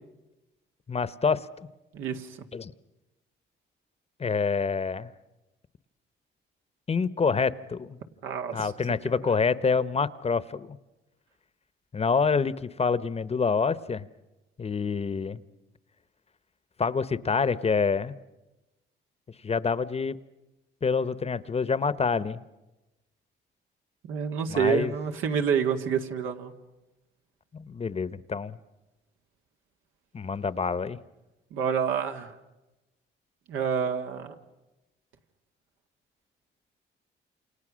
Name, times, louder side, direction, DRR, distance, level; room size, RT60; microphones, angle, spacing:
voice 1, 0.9-1.5 2.5-2.7 4.2-5.1 6.9-8.0 8.5-10.8 11.9-14.1 14.6-15.4 16.8-18.2 19.4-20.2 20.8-22.4 24.5-24.9 27.5-28.6 30.1-31.0, left 5 dB, 30° left, 16 dB, 0.9 m, -27 dB
voice 2, 1.9-2.4 8.2-8.7 24.0-26.5 31.5-32.3 33.5-34.4, right 7 dB, 85° right, 4 dB, 2.0 m, -28 dB
29.0 x 28.0 x 6.3 m, 1.0 s
cardioid pair, 90°, 20 cm